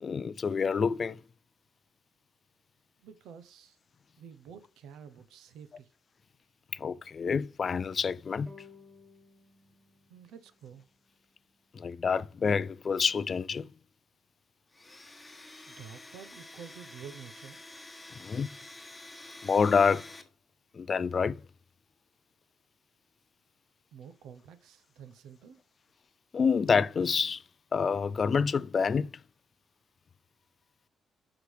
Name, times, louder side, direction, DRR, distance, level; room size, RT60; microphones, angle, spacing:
voice 1, 0.0-1.2 6.7-8.5 11.7-13.7 18.2-18.5 19.4-20.1 20.7-21.4 26.3-27.4 27.7-29.1, left 5 dB, 45° left, 0.3 m, -27 dB
voice 2, 3.0-3.8 4.2-5.9 10.1-10.8 15.7-17.6 23.9-25.6, right 7 dB, 85° right, 0.9 m, -49 dB
sound 1, 8.5-11.7, left 4 dB, 10° right, 1.4 m, -57 dB
Domestic sounds home sounds, 14.7-20.2, left 2 dB, 15° left, 1.3 m, -49 dB
8.2 x 6.0 x 3.3 m
cardioid pair, 90°, 0 cm